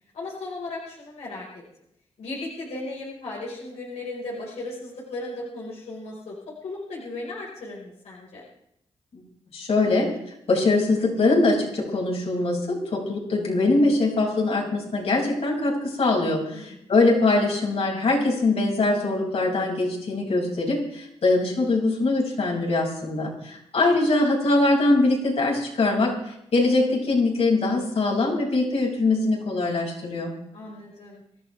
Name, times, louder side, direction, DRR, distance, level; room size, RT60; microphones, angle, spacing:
voice 1, 0.1-1.5 2.2-6.3 6.6-8.4 16.5-16.8 30.5-31.2, left 2 dB, 90° left, -4 dB, 4.9 m, -36 dB
voice 2, 9.5-10.1 10.5-26.1 26.5-30.3, left 2 dB, 70° left, -1 dB, 6.3 m, -22 dB
26.0 x 13.5 x 3.5 m, 0.76 s
cardioid pair, 60°, 11 cm